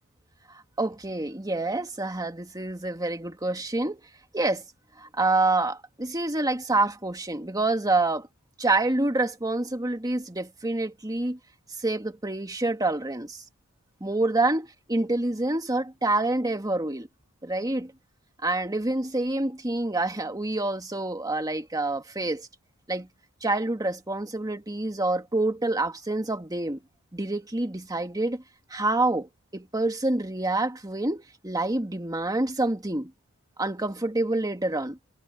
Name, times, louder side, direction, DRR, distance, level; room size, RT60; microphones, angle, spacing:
voice 1, 0.5-4.0 4.3-4.6 5.0-8.3 8.6-11.4 11.8-13.4 14.0-17.1 17.4-17.9 18.4-22.5 22.9-23.1 23.4-26.8 27.1-28.4 28.7-33.1 33.6-35.0, right 2 dB, 15° right, 1.9 m, -27 dB
head